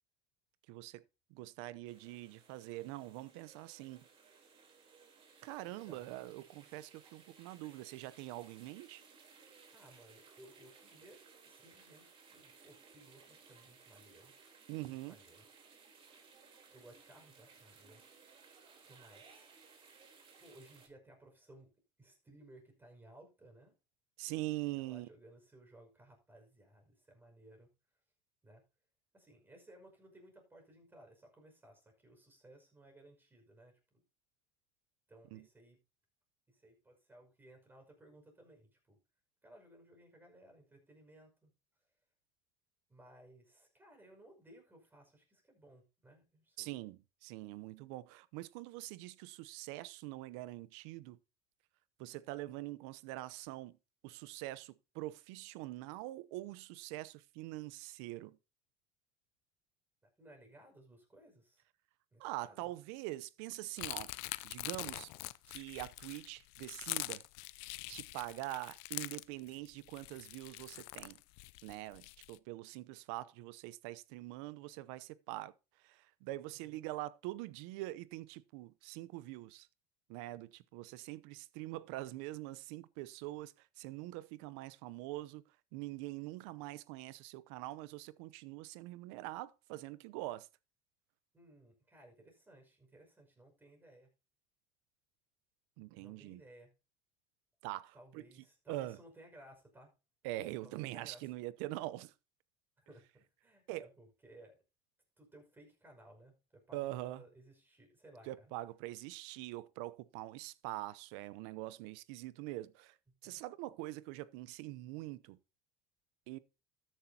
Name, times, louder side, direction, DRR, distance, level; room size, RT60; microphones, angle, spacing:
voice 1, 0.7-1.0 1.3-4.1 5.4-9.0 14.7-15.2 24.2-25.1 35.3-35.5 46.6-51.2 52.0-53.8 54.0-58.4 62.2-64.1 64.4-65.1 65.5-67.2 67.9-71.2 71.6-79.7 80.1-85.4 85.7-90.5 95.8-96.4 97.6-98.2 98.7-99.0 100.2-102.1 103.7-103.9 106.7-107.2 108.3-113.0 113.2-115.4 116.3-116.4, right 17 dB, 75° right, 0.8 m, -44 dB
sound 1, 1.8-20.9, right 5 dB, 40° right, 3.7 m, -61 dB
voice 2, 9.7-14.3 14.9-15.5 16.7-18.0 18.8-19.5 20.4-21.7 22.0-23.7 24.7-27.7 28.4-28.6 29.1-34.0 35.1-35.8 36.5-39.0 39.4-41.5 42.9-46.7 60.0-61.6 62.1-62.7 76.6-76.8 91.3-94.1 95.9-96.7 97.9-99.9 100.6-101.2 102.8-104.6 105.2-108.5 113.2-113.4, right 1 dB, 15° right, 5.7 m, -60 dB
sound 2, 63.8-72.4, left 22 dB, 70° left, 0.6 m, -44 dB
13.0 x 10.0 x 2.9 m
supercardioid pair, 120°, 15 cm